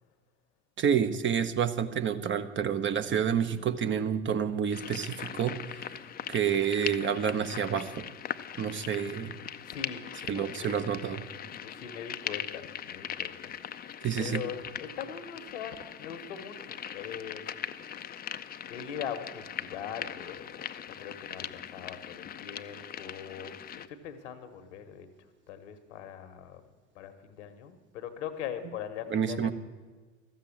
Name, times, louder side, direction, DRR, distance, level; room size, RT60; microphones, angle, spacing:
voice 1, 0.8-5.9 6.3-8.1 8.6-9.3 10.3-11.2 14.0-14.4 29.1-29.5, right 8 dB, 35° right, 10 dB, 0.8 m, -29 dB
sound 1, 4.7-23.9, left 9 dB, 25° left, 0.5 m, -40 dB
voice 2, 9.6-11.0 11.5-13.5 14.2-17.5 18.7-23.6 23.9-25.1 25.5-26.6 26.9-29.5, left 8 dB, 75° left, 10 dB, 1.2 m, -41 dB
13.0 x 7.5 x 8.6 m, 1.4 s
hypercardioid pair, 70°, 36 cm